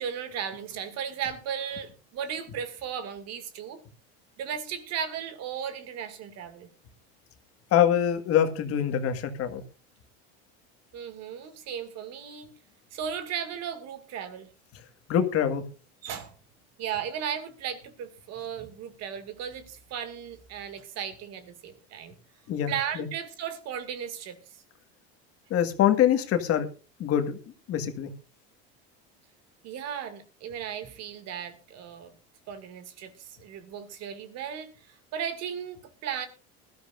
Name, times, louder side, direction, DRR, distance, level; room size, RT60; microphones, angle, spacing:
voice 1, 0.0-3.8 4.4-6.7 10.9-12.5 12.9-14.5 16.0-16.3 16.8-22.1 22.7-24.4 29.6-32.1 32.5-33.1 33.4-34.7 35.1-36.3, right 8 dB, 55° right, 2.2 m, -36 dB
voice 2, 7.7-9.6 14.7-14.8 15.1-15.6 22.5-23.1 25.5-26.7 27.0-27.4 27.7-28.1, left 10 dB, 50° left, 1.8 m, -24 dB
20.5 x 13.0 x 2.5 m
supercardioid pair, 110°, 31 cm